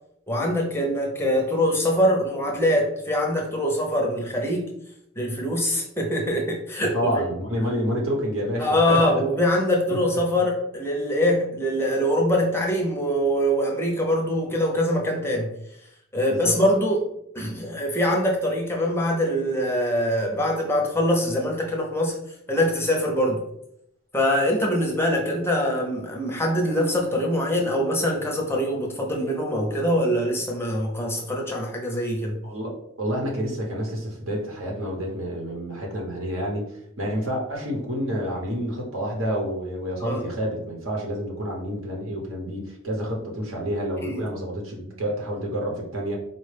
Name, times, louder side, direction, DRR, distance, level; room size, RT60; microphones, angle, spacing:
voice 1, 0.3-4.7 5.2-7.2 8.6-15.5 16.1-17.0 17.3-22.2 22.5-23.4 24.1-32.3 40.0-40.2 44.0-44.2, equal, 10° left, 0 dB, 0.5 m, -23 dB
voice 2, 6.8-9.2 16.3-16.6 32.4-32.7 33.0-46.2, equal, 75° right, -1 dB, 1.0 m, -28 dB
4.2 x 2.1 x 3.3 m, 0.75 s
head